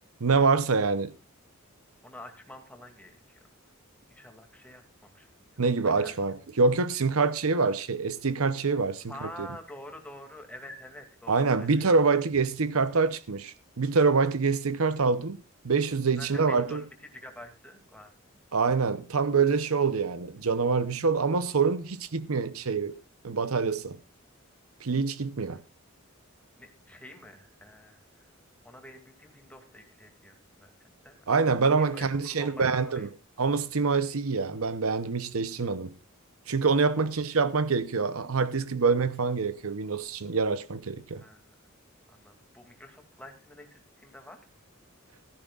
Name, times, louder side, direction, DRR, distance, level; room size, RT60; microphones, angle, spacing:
voice 1, 0.2-1.1 5.6-9.1 9.4-9.5 11.3-16.8 18.5-23.0 23.2-24.0 24.8-25.6 31.3-33.1 33.4-35.9 36.5-41.2, right 4 dB, 75° right, 0.8 m, -26 dB
voice 2, 2.0-3.4 4.1-5.5 5.8-6.1 9.1-11.9 16.2-16.9 17.1-18.4 25.5-25.6 26.5-28.3 28.6-31.3 31.8-33.1 37.0-37.1 41.1-41.6 42.1-44.4, left 1 dB, 5° left, 2.4 m, -47 dB
15.5 x 14.0 x 2.5 m
head